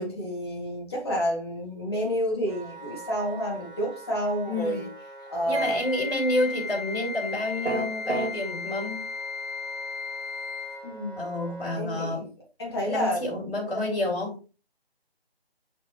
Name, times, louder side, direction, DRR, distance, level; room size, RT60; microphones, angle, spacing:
voice 1, 0.0-4.9 5.3-5.9 10.8-11.4 11.7-12.2 12.6-13.4 13.7-14.0, equal, 25° left, -2 dB, 1.9 m, -30 dB
Wind instrument woodwind instrument, 2.5-11.8, right 2 dB, 45° right, 1.4 m, -44 dB
voice 2, 4.4-4.8 5.5-9.0 11.2-12.3 12.8-14.4, left 1 dB, 55° left, -5 dB, 3.7 m, -29 dB
Wind instrument woodwind instrument 2, 5.5-10.9, left 5 dB, 25° right, 1.8 m, -35 dB
sound 1, 7.6-8.3, right 3 dB, 75° right, 2.2 m, -27 dB
6.0 x 5.9 x 2.9 m, 0.34 s
figure-of-eight pair, 160°, 32 cm